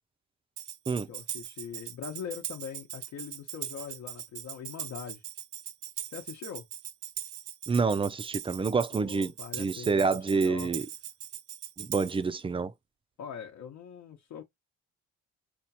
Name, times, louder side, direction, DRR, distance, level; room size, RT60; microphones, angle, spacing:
Tambourine, 0.6-12.3, right 11 dB, 85° right, 0.6 m, -40 dB
voice 1, 1.0-5.2 6.1-6.6 8.9-10.7 12.0-12.1 13.2-14.4, left 8 dB, 70° left, 0.9 m, -42 dB
voice 2, 7.7-9.3 9.6-10.8 11.8-12.7, right 4 dB, 20° right, 0.4 m, -27 dB
4.4 x 2.4 x 2.8 m
cardioid pair, 90°, 30 cm